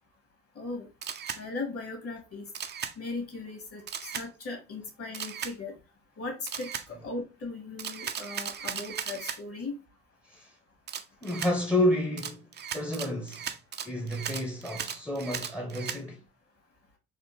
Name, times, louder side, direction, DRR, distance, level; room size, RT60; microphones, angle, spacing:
voice 1, 0.6-0.9 1.4-2.5 3.0-5.7 6.2-9.7, left 3 dB, 50° left, 1.8 m, -38 dB
Camera, 1.0-1.4 2.5-2.9 3.9-4.3 5.1-5.5 6.5-6.9 7.8-9.4 10.9-11.5 12.2-16.0, right 8 dB, 35° right, 0.5 m, -36 dB
voice 2, 11.2-12.5 12.7-13.5 13.8-16.2, left 1 dB, 10° left, 0.8 m, -30 dB
4.2 x 2.4 x 2.9 m
supercardioid pair, 65°, 30 cm